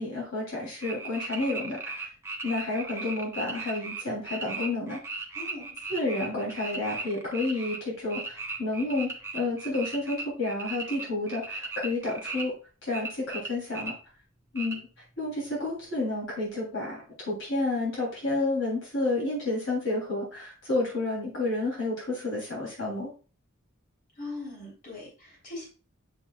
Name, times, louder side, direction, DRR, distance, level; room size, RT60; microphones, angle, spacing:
voice 1, 0.0-2.1 2.4-5.0 5.9-12.5 12.8-13.9 14.5-14.8 15.2-23.1, left 2 dB, 65° left, -4 dB, 3.0 m, -30 dB
sound 1, 0.8-7.8 8.1-12.4 12.9-13.9 14.6-14.7, right 3 dB, 15° right, 0.9 m, -37 dB
voice 2, 5.3-5.8 24.1-25.6, left 2 dB, 45° left, -3 dB, 3.3 m, -40 dB
7.2 x 6.9 x 2.3 m, 0.35 s
head